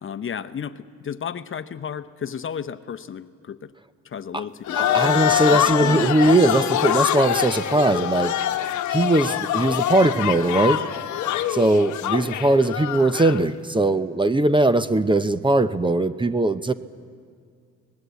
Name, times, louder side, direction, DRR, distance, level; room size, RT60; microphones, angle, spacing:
voice 1, 0.0-3.7 4.0-5.1 5.5-6.1 12.0-12.1, left 7 dB, 45° left, 12 dB, 0.9 m, -33 dB
sound 1, 4.7-13.4, left 11 dB, 70° left, 1.1 m, -24 dB
voice 2, 4.8-8.4 8.9-10.8 11.5-16.7, right 2 dB, 15° right, 12 dB, 0.8 m, -20 dB
26.0 x 19.5 x 8.2 m, 2.2 s
cardioid pair, 90°, 30 cm